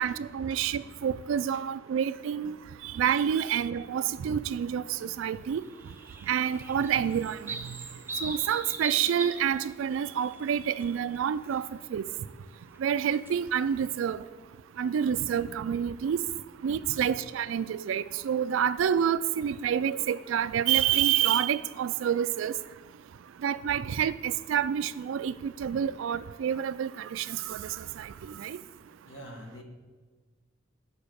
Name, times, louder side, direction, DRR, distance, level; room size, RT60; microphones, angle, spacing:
voice 1, 0.0-2.6 2.8-5.6 6.3-7.6 8.2-11.6 11.9-12.0 12.8-14.2 14.8-16.2 16.6-22.5 23.4-27.7 28.0-28.1 28.4-28.6, right 8 dB, 80° right, 15 dB, 0.3 m, -28 dB
sound 1, 5.7-10.9 11.1-11.5 12.7-14.0, right 3 dB, 10° right, 0.4 m, -40 dB
voice 2, 29.0-29.6, equal, 75° left, 3 dB, 1.2 m, -46 dB
7.0 x 4.9 x 6.3 m, 1.4 s
head